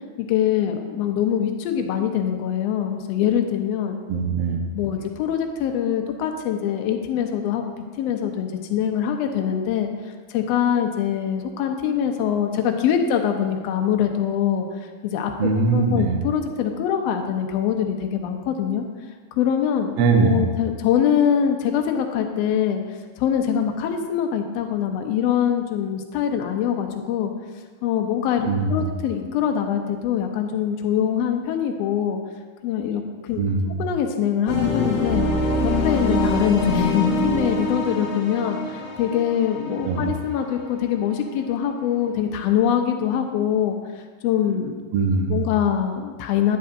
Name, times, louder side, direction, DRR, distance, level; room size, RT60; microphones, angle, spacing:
voice 1, 0.2-4.0 4.7-7.6 8.0-9.9 10.3-14.6 15.0-18.8 19.4-19.9 20.2-22.8 23.2-27.3 27.8-32.2 32.6-33.4 33.8-35.2 35.6-43.8 44.2-44.8 45.3-46.6, left 9 dB, 80° left, 4 dB, 1.4 m, -23 dB
voice 2, 4.1-4.7 15.4-16.2 20.0-20.5 28.4-28.7 33.4-33.8 39.8-40.1 44.9-45.4, right 4 dB, 75° right, 3 dB, 1.3 m, -21 dB
sound 1, 34.5-41.3, left 1 dB, 60° left, 1.9 m, -25 dB
10.5 x 9.2 x 2.6 m, 1.5 s
omnidirectional pair, 3.8 m